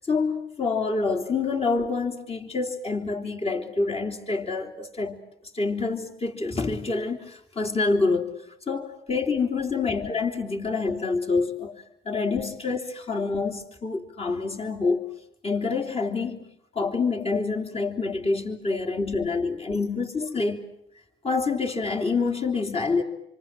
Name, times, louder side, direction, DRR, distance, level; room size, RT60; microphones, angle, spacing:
voice 1, 0.1-5.2 5.5-8.3 8.7-15.1 15.4-16.5 16.7-20.7 21.2-23.0, left 4 dB, 30° left, 3.4 m, -27 dB
28.0 x 24.5 x 7.6 m
cardioid pair, 90°, 20 cm